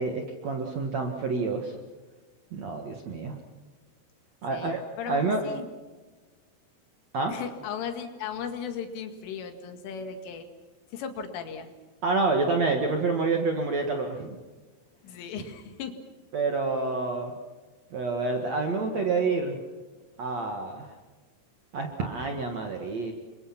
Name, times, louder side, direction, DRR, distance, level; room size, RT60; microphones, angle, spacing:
voice 1, 0.0-1.8 2.5-3.3 4.4-5.4 7.1-7.3 12.0-14.4 16.3-17.3 17.9-19.6 20.2-20.9 21.7-23.1, right 3 dB, 55° right, 3 dB, 2.0 m, -28 dB
voice 2, 4.5-5.7 7.3-10.5 10.9-11.7 15.0-15.9, left 7 dB, 90° left, 6 dB, 4.6 m, -36 dB
28.5 x 24.5 x 5.9 m, 1.3 s
omnidirectional pair, 5.5 m